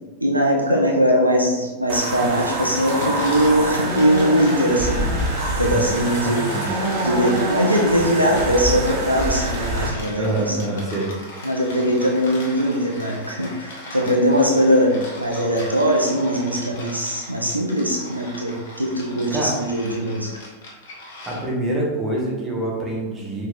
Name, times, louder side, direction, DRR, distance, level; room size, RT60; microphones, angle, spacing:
voice 1, 0.2-10.7 11.4-20.4, equal, 85° right, 0 dB, 0.6 m, -21 dB
sound 1, 1.9-9.9, right 1 dB, 35° right, 1.0 m, -25 dB
sound 2, 2.7-21.7, left 1 dB, 55° left, 1.1 m, -39 dB
voice 2, 6.2-6.7 10.1-11.1 19.3-19.6 21.3-23.5, right 1 dB, 15° right, -4 dB, 1.3 m, -25 dB
5.0 x 3.8 x 2.6 m, 1.2 s
figure-of-eight pair, 90°, 0 cm